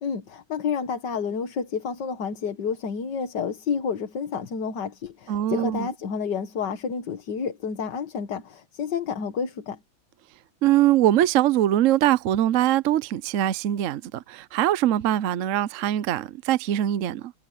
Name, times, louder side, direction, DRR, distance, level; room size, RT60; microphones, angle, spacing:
voice 1, 0.0-9.8, left 6 dB, 60° left, 2.0 m, -30 dB
voice 2, 5.3-5.9 10.6-17.3, right 12 dB, 75° right, 0.7 m, -22 dB
omnidirectional pair, 2.2 m